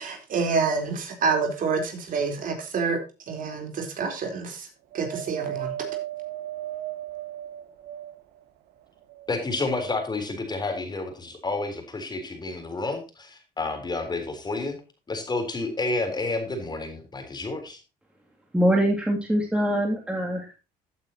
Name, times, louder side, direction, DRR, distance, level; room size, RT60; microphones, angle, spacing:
voice 1, 0.0-3.0 3.3-4.7 4.9-5.7, right 5 dB, 55° right, 4 dB, 4.0 m, -27 dB
Wind, 4.9-8.4 9.0-10.0 10.8-10.9, right 13 dB, 80° right, 1.7 m, -36 dB
voice 2, 9.3-14.8 15.1-17.8, left 3 dB, 25° left, 5 dB, 3.7 m, -30 dB
voice 3, 18.5-20.5, equal, 5° right, 0 dB, 2.7 m, -23 dB
15.0 x 8.8 x 2.9 m, 0.30 s
cardioid pair, 110°, 17 cm